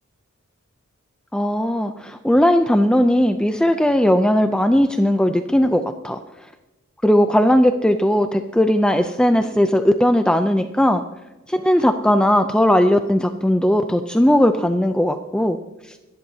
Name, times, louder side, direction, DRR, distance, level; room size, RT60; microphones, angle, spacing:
voice 1, 1.3-6.2 7.0-11.0 11.5-15.6 15.9-16.0, equal, 5° left, 7 dB, 0.4 m, -18 dB
25.5 x 10.5 x 2.8 m, 1.1 s
head